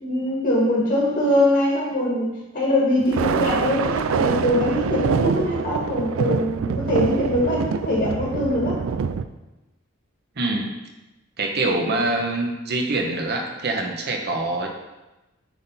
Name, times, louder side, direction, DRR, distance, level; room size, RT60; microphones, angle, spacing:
voice 1, 0.0-8.8, left 1 dB, 55° left, -6 dB, 1.9 m, -22 dB
Thunder, 3.0-9.3, right 6 dB, 85° right, 0.4 m, -25 dB
voice 2, 10.4-10.7 11.4-14.7, right 2 dB, 55° right, 2 dB, 1.0 m, -24 dB
8.3 x 3.8 x 4.1 m, 1.0 s
head